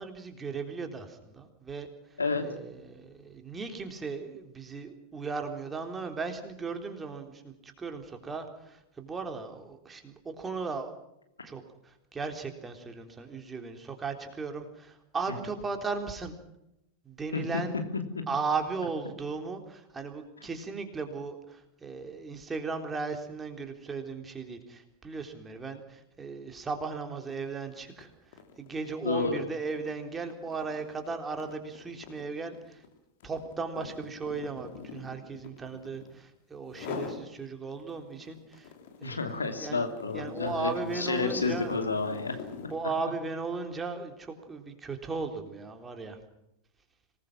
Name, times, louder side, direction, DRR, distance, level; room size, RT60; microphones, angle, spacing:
voice 1, 0.0-1.9 2.4-10.9 11.4-16.3 17.1-17.8 18.3-28.1 28.6-32.8 33.2-38.7 39.0-39.8 40.1-41.8 42.7-46.2, right 4 dB, 15° right, 5 dB, 3.6 m, -36 dB
voice 2, 17.9-18.2 29.0-29.3 39.0-40.7 40.9-42.4, left 3 dB, 75° left, 6 dB, 3.0 m, -30 dB
sound 1, 27.2-27.4 27.8-36.2 36.7-37.3 37.7-42.9, left 6 dB, 55° left, 3.7 m, -43 dB
26.0 x 19.5 x 6.1 m, 0.84 s
figure-of-eight pair, 90°, 0 cm